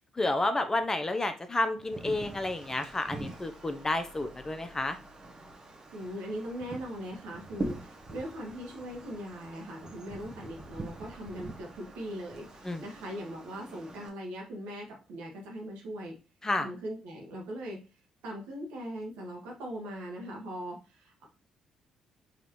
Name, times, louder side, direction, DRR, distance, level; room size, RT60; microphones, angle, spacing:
voice 1, 0.2-5.0 12.6-12.8 16.4-16.7, left 2 dB, 25° left, 8 dB, 0.7 m, -30 dB
Wind, 1.8-14.1, right 2 dB, 35° right, 1.2 m, -44 dB
voice 2, 5.9-16.1 16.6-17.8 18.2-21.3, equal, 75° right, 0 dB, 1.4 m, -40 dB
5.1 x 3.2 x 3.0 m, 0.32 s
hypercardioid pair, 45°, 2 cm